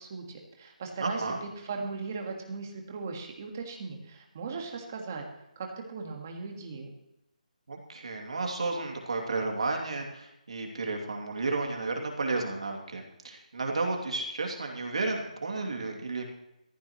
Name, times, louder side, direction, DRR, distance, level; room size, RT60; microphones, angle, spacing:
voice 1, 0.0-5.2 5.6-6.9, right 4 dB, 20° right, 2 dB, 1.6 m, -38 dB
voice 2, 1.0-1.4 7.7-16.2, right 3 dB, 50° right, 2 dB, 2.6 m, -32 dB
18.5 x 14.5 x 3.1 m, 0.89 s
hypercardioid pair, 180°, 4 cm